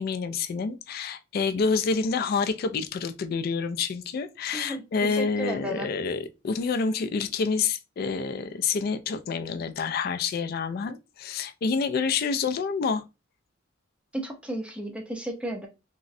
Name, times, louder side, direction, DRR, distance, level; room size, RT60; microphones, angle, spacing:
voice 1, 0.0-13.0, left 5 dB, 50° left, 0.3 m, -28 dB
voice 2, 4.5-5.9 14.1-15.7, right 1 dB, 5° right, 0.5 m, -34 dB
3.6 x 2.0 x 2.5 m
head